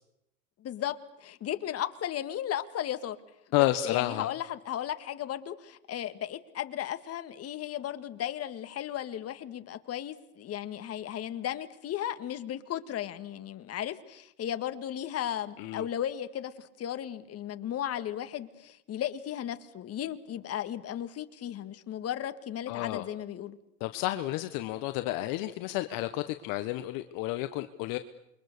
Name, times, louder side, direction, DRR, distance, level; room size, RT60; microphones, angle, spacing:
voice 1, 0.6-3.2 3.8-23.6, left 11 dB, 35° left, 10 dB, 1.9 m, -35 dB
voice 2, 3.5-4.3 15.6-15.8 22.7-23.1 23.8-28.0, left 16 dB, 55° left, 9 dB, 1.3 m, -31 dB
28.0 x 23.5 x 6.8 m, 0.80 s
hypercardioid pair, 100°, 41 cm